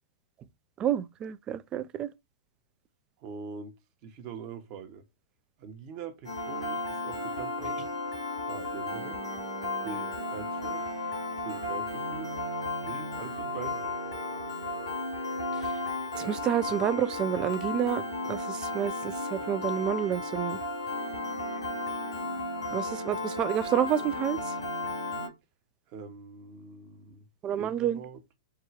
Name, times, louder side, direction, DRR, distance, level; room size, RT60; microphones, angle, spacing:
voice 1, 0.8-2.1 15.6-15.7 16.2-18.0 18.3-20.6 22.7-24.5 27.4-28.0, right 10 dB, 30° right, 0.4 m, -29 dB
voice 2, 3.2-5.0 5.6-7.8 8.4-9.2 9.8-10.9 11.4-12.3 12.8-14.0 25.9-27.3 27.6-28.2, right 6 dB, 45° right, 1.0 m, -43 dB
Piano, 6.2-25.3, left 2 dB, 85° left, 2.4 m, -34 dB
4.6 x 2.3 x 4.7 m
hypercardioid pair, 115°, 3 cm